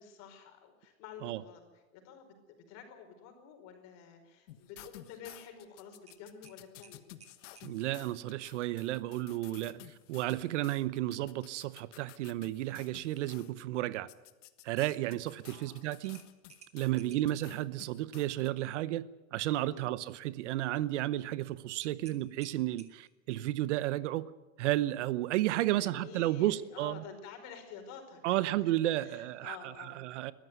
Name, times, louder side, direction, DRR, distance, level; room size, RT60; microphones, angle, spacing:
voice 1, 0.0-1.6 1.9-7.2 9.6-9.8 15.4-15.8 16.9-17.3 19.6-20.0 25.7-30.0, left 6 dB, 40° left, 4.9 m, -50 dB
sound 1, 4.5-13.5 14.1-18.5, left 15 dB, 60° left, 1.5 m, -54 dB
sound 2, 6.1-7.7 10.3-10.6 11.0-11.1 16.0-17.4 21.8-23.2, right 6 dB, 15° right, 1.8 m, -57 dB
voice 2, 7.6-14.1 14.6-16.2 16.7-19.1 19.3-24.3 24.6-27.0 28.2-30.3, right 15 dB, 60° right, 0.8 m, -32 dB
22.0 x 14.5 x 9.4 m
supercardioid pair, 140°, 41 cm